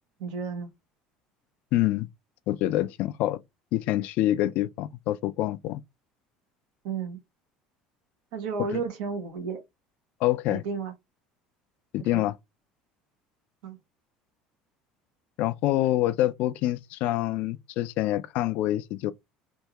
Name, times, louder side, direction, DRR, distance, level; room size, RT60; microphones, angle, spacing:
voice 1, 0.2-0.7 6.8-7.2 8.3-9.6 10.5-10.9 12.1-12.2 13.6-13.8, right 5 dB, 80° right, 1.2 m, -32 dB
voice 2, 1.7-2.1 2.5-3.4 3.7-5.8 10.2-10.6 11.9-12.3 15.4-19.1, left 14 dB, 65° left, 0.4 m, -26 dB
3.5 x 2.6 x 3.0 m
supercardioid pair, 105°, 3 cm